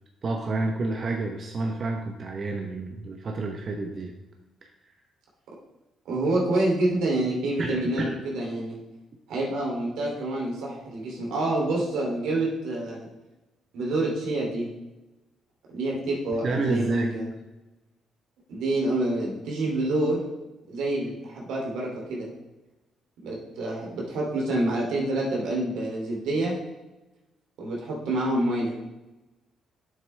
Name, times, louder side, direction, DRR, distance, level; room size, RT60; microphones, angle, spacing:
voice 1, 0.2-4.1 7.6-8.2 16.4-17.1, right 3 dB, 45° right, 2 dB, 0.9 m, -29 dB
voice 2, 6.0-8.8 9.3-13.1 13.7-14.7 15.7-17.3 18.5-20.2 20.7-22.3 23.2-26.5 27.6-28.7, right 1 dB, 85° right, -3 dB, 2.6 m, -27 dB
9.7 x 7.4 x 3.3 m, 1.1 s
cardioid pair, 90°, 0 cm